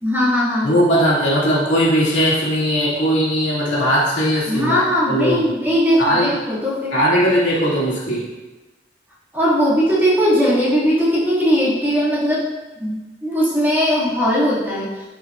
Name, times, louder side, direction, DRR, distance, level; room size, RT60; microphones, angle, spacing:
voice 1, 0.0-0.7 4.5-7.0 9.3-12.5 12.8-14.9, equal, 10° right, -9 dB, 2.3 m, -19 dB
voice 2, 0.6-4.8 5.1-5.4 6.0-6.3 6.9-8.3, equal, 80° left, -6 dB, 2.5 m, -18 dB
11.0 x 5.8 x 2.6 m, 1.1 s
head